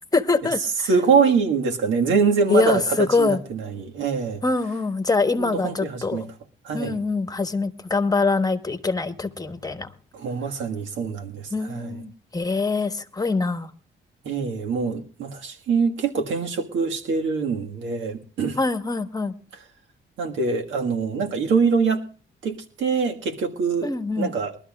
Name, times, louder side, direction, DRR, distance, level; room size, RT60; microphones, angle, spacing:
voice 1, 0.1-0.9 2.5-3.4 4.4-6.3 6.7-9.9 11.5-13.7 18.6-19.3 23.8-24.3, left 3 dB, 20° left, 1.3 m, -24 dB
voice 2, 0.8-4.4 5.4-6.3 6.6-7.0 10.1-12.0 14.2-18.6 20.2-22.0 22.4-24.6, right 5 dB, 75° right, 1.7 m, -24 dB
22.5 x 12.5 x 2.4 m
cardioid pair, 90°, 20 cm